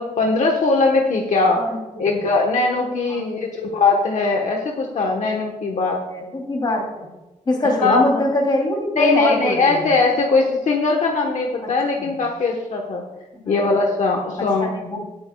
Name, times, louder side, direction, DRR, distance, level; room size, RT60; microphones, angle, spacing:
voice 1, 0.0-1.7 2.0-6.0 7.6-8.0 9.0-13.0 13.5-14.7, left 3 dB, 65° left, 1 dB, 1.1 m, -20 dB
voice 2, 1.6-2.1 3.1-3.2 6.1-7.1 7.5-9.8 11.9-12.1 13.4-13.7 14.6-15.0, left 1 dB, 35° left, -1 dB, 2.8 m, -23 dB
19.0 x 8.6 x 2.3 m, 1.1 s
wide cardioid pair, 165°, 13 cm